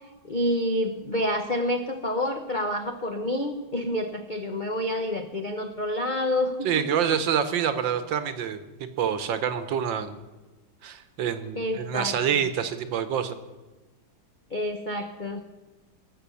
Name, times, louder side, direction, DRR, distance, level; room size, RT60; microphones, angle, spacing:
voice 1, 0.2-7.2 11.6-12.4 14.5-15.4, left 1 dB, 75° left, 4 dB, 0.4 m, -28 dB
voice 2, 6.6-10.2 10.8-13.4, right 8 dB, 70° right, 10 dB, 1.5 m, -27 dB
18.0 x 7.6 x 7.0 m, 1.2 s
omnidirectional pair, 2.2 m